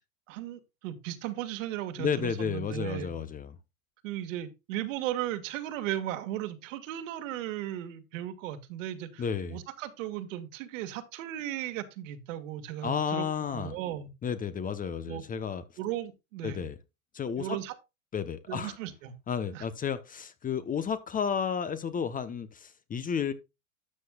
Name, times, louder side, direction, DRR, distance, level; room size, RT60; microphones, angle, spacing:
voice 1, 0.3-3.1 4.0-9.2 9.5-13.3 13.5-14.1 15.1-15.2 15.8-16.7 17.4-17.7 18.5-19.1 19.5-19.7, right 12 dB, 60° right, 1.9 m, -36 dB
voice 2, 2.0-3.6 9.2-9.6 12.8-13.8 14.2-15.6 16.4-16.8 17.1-17.6 18.1-18.8 19.3-23.3, left 7 dB, 20° left, 0.9 m, -32 dB
12.5 x 7.7 x 2.3 m
hypercardioid pair, 115°, 42 cm